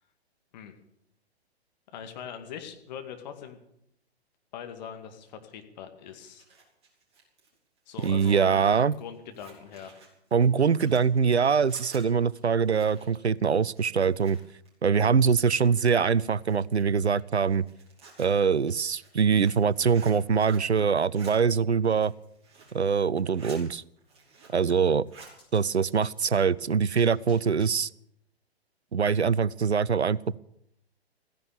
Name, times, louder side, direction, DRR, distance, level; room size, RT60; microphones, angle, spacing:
voice 1, 1.9-3.6 4.5-6.5 7.9-10.0, left 8 dB, 40° left, 6 dB, 2.3 m, -42 dB
Zipper (clothing), 6.1-14.7 15.0-15.9 16.4-20.7 21.0-21.3 21.8-22.8 23.1-23.6 24.0-24.7 24.9-25.4, right 4 dB, 20° right, 5.2 m, -53 dB
voice 2, 8.0-8.9 10.3-14.4 14.8-17.7 18.2-22.1 22.7-23.8 24.5-25.1 25.5-27.9 28.9-30.4, right 6 dB, 90° right, 21 dB, 0.6 m, -23 dB
sound 1, 17.8-17.9 18.1-18.2 18.4-18.5 18.8-18.9 19.1-19.2 19.4-19.5 19.7-19.8 20.0-20.1 20.3-20.4 20.6-20.7 21.0-21.1 21.3-21.4 21.6-21.7 21.9-22.0 22.2-22.3 22.5-22.6 22.9-23.0 23.2-23.3 23.5-23.6 23.8-23.9 24.1-24.2 24.4-24.5 24.8-24.9 25.1-25.2 25.4-27.9, left 2 dB, 15° left, 5.5 m, -60 dB
15.5 x 10.5 x 8.6 m, 0.75 s
figure-of-eight pair, 120°, 32 cm